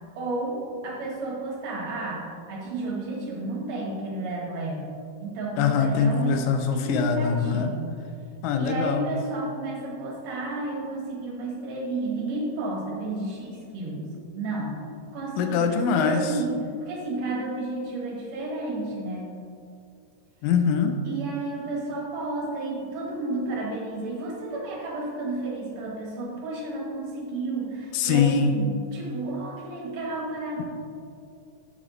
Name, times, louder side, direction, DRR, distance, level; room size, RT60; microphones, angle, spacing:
voice 1, 0.2-4.9 5.2-7.9 8.5-14.8 15.1-19.3 21.0-30.6, right 2 dB, 55° right, -3 dB, 2.2 m, -32 dB
voice 2, 5.6-7.7 8.4-9.0 15.4-16.3 20.4-21.0 27.9-28.5, left 6 dB, 80° left, 6 dB, 2.0 m, -23 dB
9.0 x 7.8 x 3.2 m, 2.5 s
omnidirectional pair, 4.4 m